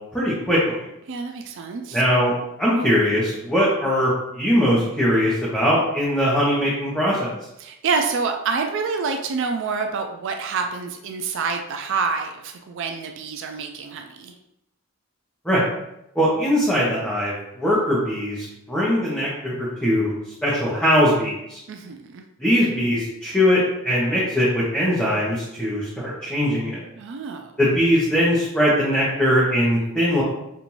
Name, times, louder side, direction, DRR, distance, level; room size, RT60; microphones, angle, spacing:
voice 1, 0.1-0.9 1.9-2.3 2.6-4.1 4.3-7.3 15.4-15.6 16.1-20.1 20.4-21.6 22.4-26.8 27.6-30.2, equal, 5° left, -9 dB, 0.8 m, -21 dB
voice 2, 1.1-2.0 7.6-14.3 21.7-22.2 27.0-27.5, right 4 dB, 55° right, 4 dB, 0.3 m, -27 dB
5.3 x 2.5 x 3.0 m, 0.83 s
head